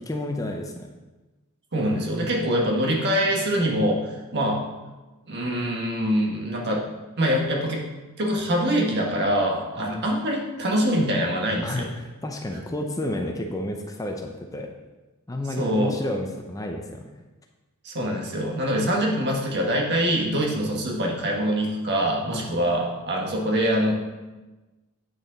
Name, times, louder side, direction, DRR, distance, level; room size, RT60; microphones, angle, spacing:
voice 1, 0.1-0.9 2.1-2.6 9.8-10.0 11.6-14.7 15.3-17.1 22.3-22.5, left 1 dB, 15° left, 3 dB, 0.6 m, -31 dB
voice 2, 1.7-4.7 5.3-6.9 7.2-7.8 8.2-11.9 15.6-16.0 17.8-23.9, equal, 50° right, 0 dB, 1.5 m, -24 dB
8.6 x 6.3 x 4.0 m, 1.1 s
head